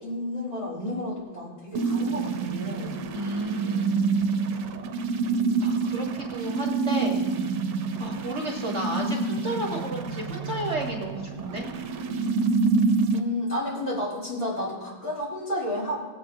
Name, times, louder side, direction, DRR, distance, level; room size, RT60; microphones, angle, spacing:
voice 1, 0.0-3.0 13.1-16.0, left 1 dB, 35° left, -7 dB, 4.2 m, -31 dB
sound 1, 1.7-13.2, right 4 dB, 75° right, 1.3 m, -27 dB
voice 2, 3.1-3.9 5.6-7.3 8.0-11.7, right 1 dB, 45° right, -2 dB, 1.5 m, -32 dB
20.0 x 8.5 x 2.6 m, 1.3 s
omnidirectional pair, 1.9 m